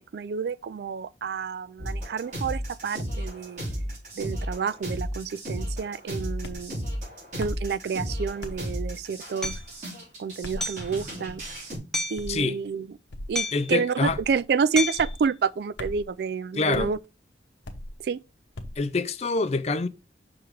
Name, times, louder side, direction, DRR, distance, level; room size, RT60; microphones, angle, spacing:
voice 1, 0.0-3.6 4.2-6.8 7.4-9.6 10.2-11.4 12.1-12.9 13.3-17.0 18.0-18.2, right 5 dB, 65° right, 0.3 m, -29 dB
sound 1, 1.8-11.8, equal, 45° right, 3.7 m, -34 dB
sound 2, 6.4-6.7 7.4-7.7 8.4-8.7 9.4-9.7 10.4-10.7 11.3-11.6 12.2-12.4 13.1-13.4 14.1-14.4 15.0-15.2 15.8-16.1 16.7-16.9 17.6-18.0 18.6-18.8, left 1 dB, 90° left, 0.9 m, -38 dB
Hammer, 9.4-9.6 10.6-10.9 11.9-12.3 13.4-13.8 14.8-15.1, left 2 dB, 5° left, 0.7 m, -30 dB
voice 2, 13.5-14.2 16.5-16.9 18.8-19.9, left 3 dB, 35° left, 0.4 m, -26 dB
6.2 x 3.7 x 4.5 m
head